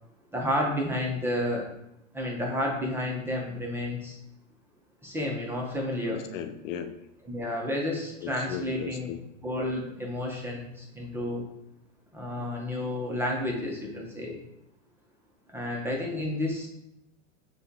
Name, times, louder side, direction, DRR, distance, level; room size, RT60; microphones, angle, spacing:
voice 1, 0.3-1.7 2.1-4.2 5.0-6.2 7.3-9.1 9.4-11.4 12.1-14.4 15.5-16.7, left 1 dB, 5° right, -1 dB, 0.6 m, -31 dB
voice 2, 6.1-6.9 8.2-9.2, left 9 dB, 80° left, 8 dB, 0.5 m, -36 dB
5.9 x 2.3 x 2.7 m, 0.84 s
hypercardioid pair, 120°, 38 cm